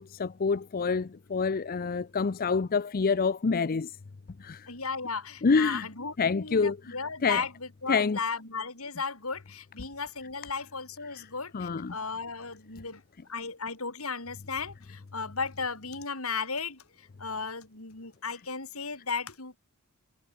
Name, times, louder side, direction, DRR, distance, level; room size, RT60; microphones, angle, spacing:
voice 1, 0.0-4.0 4.4-4.7 5.4-5.8 6.2-6.8 7.2-7.4 7.9-8.2 11.5-11.9, left 5 dB, 40° left, 0.5 m, -27 dB
voice 2, 4.7-13.0 13.3-19.6, left 4 dB, 70° left, 6.2 m, -35 dB
head